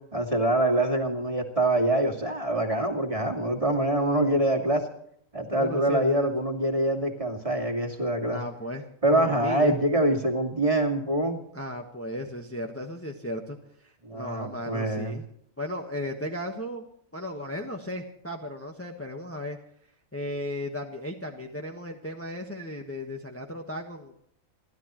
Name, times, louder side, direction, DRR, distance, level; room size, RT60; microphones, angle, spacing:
voice 1, 0.1-4.9 5.3-8.4 9.0-11.4 14.0-15.2, right 1 dB, 25° right, 3 dB, 2.3 m, -25 dB
voice 2, 5.5-6.3 8.3-8.9 9.1-9.7 11.5-13.6 13.8-15.2 15.6-16.9 17.1-19.6 20.1-24.1, left 1 dB, 10° left, 2 dB, 1.3 m, -35 dB
29.0 x 12.5 x 3.1 m, 0.70 s
omnidirectional pair, 1.4 m